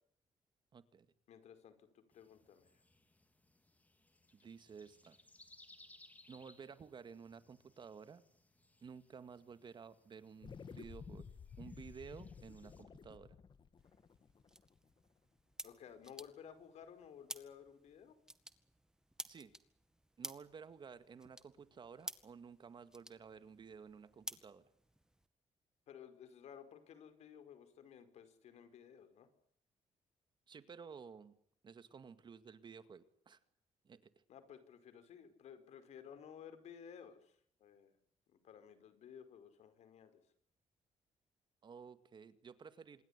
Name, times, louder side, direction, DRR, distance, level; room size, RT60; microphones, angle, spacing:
voice 1, 0.7-1.1 4.3-5.2 6.3-8.2 8.8-11.3 11.6-13.3 19.3-19.5 20.2-24.6 30.5-31.4 31.6-33.4 33.8-34.1 41.6-43.0, right 6 dB, 45° right, 12 dB, 2.1 m, -54 dB
voice 2, 1.3-2.7 15.6-18.2 25.9-29.3 34.3-38.0 38.3-40.2, left 8 dB, 75° left, 10 dB, 5.0 m, -56 dB
sound 1, 2.1-12.8, left 2 dB, 15° left, 4.0 m, -66 dB
sound 2, 10.4-15.1, left 6 dB, 45° left, 2.5 m, -53 dB
sound 3, 13.8-25.3, right 1 dB, 5° right, 2.0 m, -53 dB
27.0 x 21.5 x 8.4 m, 0.66 s
cardioid pair, 120°, 11 cm